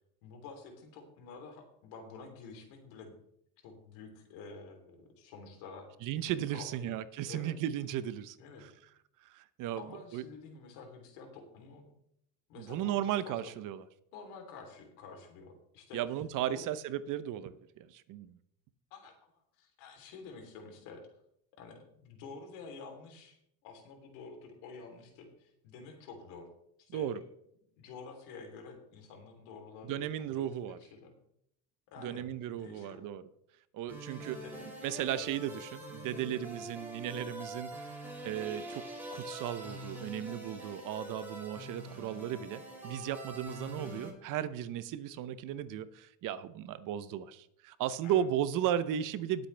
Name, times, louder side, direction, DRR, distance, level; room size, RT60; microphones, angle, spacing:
voice 1, 0.2-3.2 3.6-5.9 6.5-6.9 7.3-7.5 8.4-8.6 9.8-11.9 12.5-13.5 14.1-16.0 16.5-16.6 18.9-21.0 21.6-23.4 23.6-26.5 26.8-27.1 27.8-31.1 31.9-32.3 32.6-33.0 34.4-34.7 48.0-48.2, left 4 dB, 75° left, 3 dB, 3.5 m, -49 dB
voice 2, 6.0-8.7 9.2-9.8 10.1-10.2 12.6-13.8 15.9-18.4 26.9-27.2 29.8-30.8 32.0-33.2 33.7-34.4 34.8-38.8 39.1-49.5, right 10 dB, 55° right, 14 dB, 0.9 m, -35 dB
sound 1, 33.9-44.1, right 1 dB, 5° right, 5.5 m, -44 dB
19.0 x 7.9 x 3.4 m, 0.74 s
supercardioid pair, 115°, 38 cm